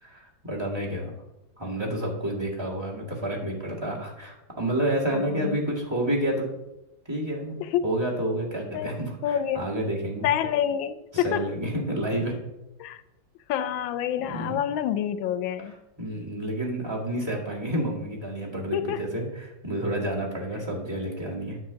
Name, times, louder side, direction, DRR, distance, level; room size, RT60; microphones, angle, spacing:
voice 1, 0.0-1.1 1.6-6.5 7.1-10.3 11.1-12.4 14.2-14.6 16.0-21.6, right 1 dB, 15° right, -5 dB, 1.9 m, -29 dB
voice 2, 5.1-5.6 7.6-7.8 8.7-9.7 10.2-11.4 12.8-13.0 13.5-15.7 18.7-19.0, left 10 dB, 90° left, 12 dB, 1.4 m, -28 dB
9.8 x 4.6 x 7.5 m, 0.93 s
omnidirectional pair, 2.1 m